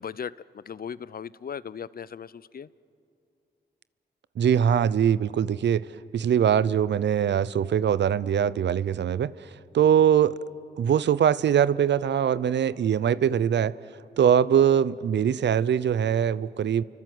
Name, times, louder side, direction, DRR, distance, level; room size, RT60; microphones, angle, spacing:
voice 1, 0.0-2.7, left 7 dB, 50° left, 19 dB, 0.6 m, -37 dB
voice 2, 4.4-5.8 6.1-9.3 9.7-10.3 10.8-13.7 14.2-16.8, right 9 dB, 70° right, 18 dB, 0.7 m, -22 dB
29.5 x 24.5 x 7.9 m, 2.6 s
cardioid pair, 55°, 19 cm